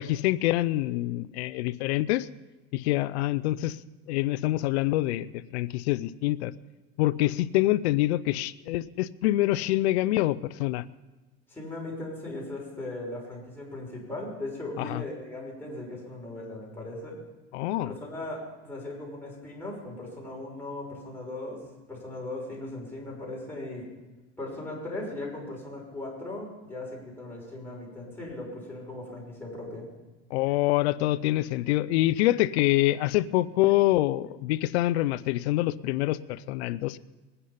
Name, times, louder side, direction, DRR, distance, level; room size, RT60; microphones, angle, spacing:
voice 1, 0.0-2.3 2.7-3.8 4.1-6.5 7.0-10.8 14.8-15.0 17.5-17.9 30.3-37.0, left 16 dB, 90° left, 17 dB, 0.6 m, -26 dB
voice 2, 11.5-17.2 17.8-21.6 21.9-23.9 24.4-29.9, left 2 dB, 5° left, -3 dB, 5.9 m, -38 dB
21.0 x 9.9 x 5.7 m, 1.2 s
supercardioid pair, 115°, 32 cm